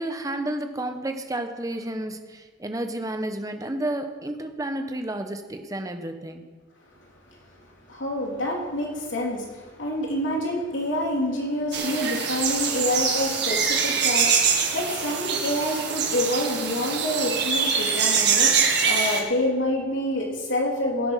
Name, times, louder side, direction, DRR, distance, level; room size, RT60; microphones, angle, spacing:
voice 1, 0.0-6.4, right 1 dB, 20° right, 6 dB, 1.0 m, -31 dB
voice 2, 7.2-7.6 7.9-21.1, left 1 dB, 85° left, -1 dB, 3.1 m, -27 dB
sound 1, 11.7-19.2, right 6 dB, 60° right, 1.9 m, -24 dB
17.5 x 7.8 x 5.8 m, 1.4 s
head